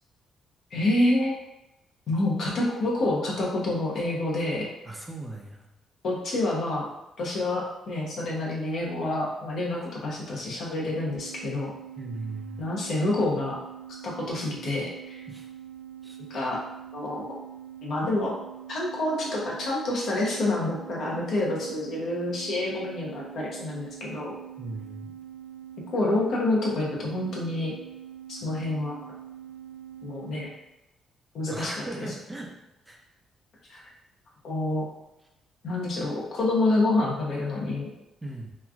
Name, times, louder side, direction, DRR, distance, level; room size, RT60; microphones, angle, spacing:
voice 1, 0.7-1.4 2.1-4.7 6.0-6.9 7.2-11.7 12.6-13.6 14.0-15.3 16.3-16.6 16.9-17.3 17.8-18.3 18.7-24.3 25.9-27.7 28.3-28.9 30.0-30.5 31.3-32.1 33.7-33.9 34.4-34.9 35.6-37.9, left 2 dB, 65° left, -3 dB, 0.8 m, -28 dB
voice 2, 4.9-5.7 12.0-12.6 15.3-15.5 16.0-16.2 24.6-25.1 31.5-32.5 32.9-33.0 38.2-38.5, right 2 dB, 15° right, 0 dB, 0.5 m, -38 dB
sound 1, 10.9-30.5, right 10 dB, 90° right, 0.5 m, -44 dB
3.1 x 2.4 x 2.3 m, 0.94 s
cardioid pair, 90°, 0 cm